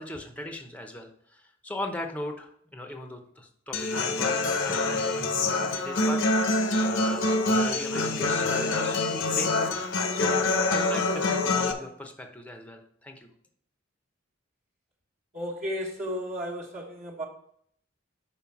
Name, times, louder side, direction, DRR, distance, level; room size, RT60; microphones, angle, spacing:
voice 1, 0.0-9.0 9.3-9.6 10.1-13.3, left 1 dB, 5° left, 4 dB, 0.8 m, -39 dB
Human voice / Acoustic guitar, 3.7-11.7, left 2 dB, 70° left, 0.9 m, -26 dB
voice 2, 15.3-17.3, equal, 40° right, -5 dB, 1.2 m, -33 dB
5.5 x 5.4 x 5.8 m, 0.67 s
head